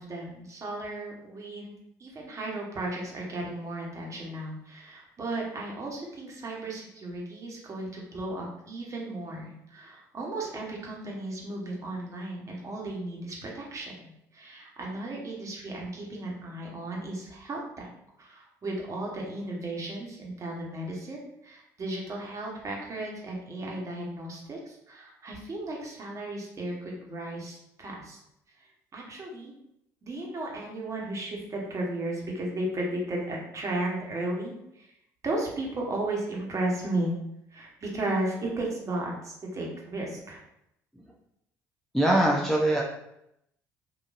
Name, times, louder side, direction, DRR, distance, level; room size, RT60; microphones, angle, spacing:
voice 1, 0.0-1.7 2.0-17.9 18.2-28.2 28.6-29.5 30.0-34.9 35.2-37.2 37.5-40.4, right 2 dB, 35° right, -2 dB, 1.3 m, -35 dB
voice 2, 41.9-42.8, right 1 dB, 5° left, -3 dB, 0.6 m, -22 dB
4.0 x 2.6 x 2.6 m, 0.79 s
hypercardioid pair, 60°, 9 cm